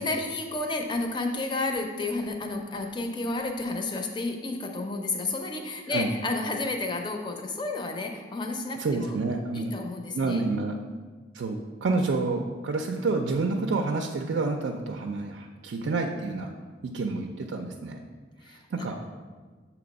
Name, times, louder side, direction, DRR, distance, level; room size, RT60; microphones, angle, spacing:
voice 1, 0.0-9.2 9.5-10.8 18.4-18.7, left 2 dB, 25° left, 3 dB, 0.5 m, -31 dB
voice 2, 8.8-9.7 10.1-10.7 11.3-16.5 16.8-18.0 18.5-19.0, right 3 dB, 85° right, 4 dB, 0.4 m, -29 dB
6.8 x 3.0 x 5.2 m, 1.4 s
head